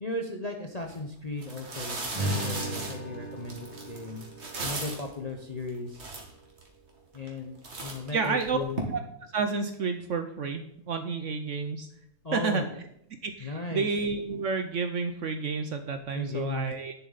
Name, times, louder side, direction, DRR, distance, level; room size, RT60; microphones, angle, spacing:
voice 1, 0.0-4.3 4.6-6.0 7.1-8.8 12.2-12.7 13.4-13.9 16.1-16.7, left 3 dB, 40° left, 2 dB, 0.6 m, -36 dB
sound 1, 0.8-0.9 1.4-5.1 5.7-5.8 5.9-6.7 7.1-7.4 7.6-8.8, right 3 dB, 40° right, 1.9 m, -37 dB
Strum, 2.1-6.5, right 1 dB, 80° left, 3.6 m, -37 dB
voice 2, 8.1-8.6 8.9-11.9 12.3-12.6 13.2-16.9, right 5 dB, 65° right, 8 dB, 0.8 m, -30 dB
9.9 x 7.1 x 4.0 m, 0.76 s
omnidirectional pair, 1.7 m